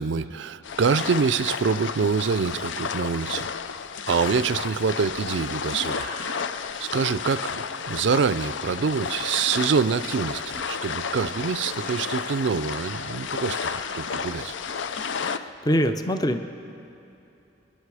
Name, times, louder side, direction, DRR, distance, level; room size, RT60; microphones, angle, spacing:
voice 1, 0.0-3.5 4.1-6.1 6.8-14.5 15.0-15.1, right 5 dB, 75° right, 15 dB, 0.4 m, -25 dB
sound 1, 0.6-15.4, left 6 dB, 80° left, 0.5 m, -32 dB
sound 2, 5.8-6.3 10.3-10.6 11.1-11.5 11.9-12.3 12.7-13.0 13.4-13.8, equal, 55° left, 4.2 m, -43 dB
voice 2, 15.2-16.5, equal, 20° left, 8 dB, 0.6 m, -24 dB
27.0 x 10.5 x 4.8 m, 2.8 s
head